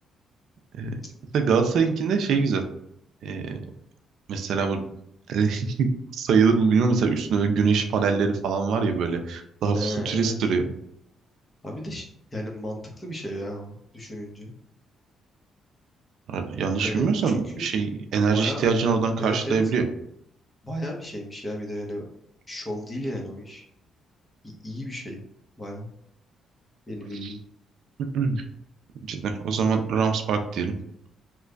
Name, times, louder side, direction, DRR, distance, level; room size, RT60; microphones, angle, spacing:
voice 1, 1.3-2.6 3.2-3.6 4.3-4.8 5.3-5.9 6.1-10.6 16.3-19.8 27.2-27.3 28.1-28.4 29.1-30.8, right 5 dB, 75° right, 6 dB, 0.5 m, -23 dB
voice 2, 9.7-10.3 11.6-12.1 12.3-14.5 16.8-17.6 18.3-18.6 19.2-19.6 20.6-22.0 22.5-23.6 24.4-25.2 25.6-25.9 26.9-27.4, left 1 dB, 20° left, -1 dB, 1.0 m, -34 dB
3.1 x 2.3 x 3.8 m, 0.74 s
cardioid pair, 90°, 0 cm